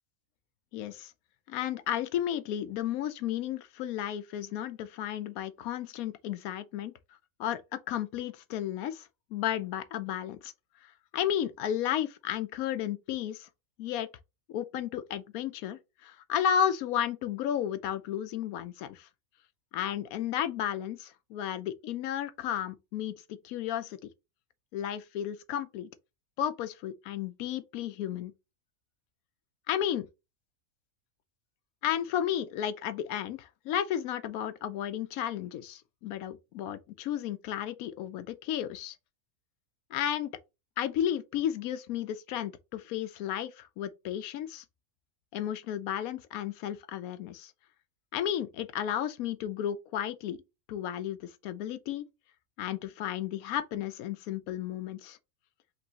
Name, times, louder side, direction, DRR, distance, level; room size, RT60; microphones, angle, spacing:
voice 1, 0.7-1.1 1.5-6.9 7.4-10.5 10.8-13.5 13.8-14.1 14.5-19.1 19.7-24.0 24.7-25.9 26.4-28.3 29.7-30.1 31.8-39.0 39.9-40.3 40.8-44.6 45.3-47.5 48.1-50.4 50.7-52.1 52.6-55.2, left 10 dB, 85° left, 1.0 m, -33 dB
5.3 x 3.1 x 2.8 m
omnidirectional pair, 1.5 m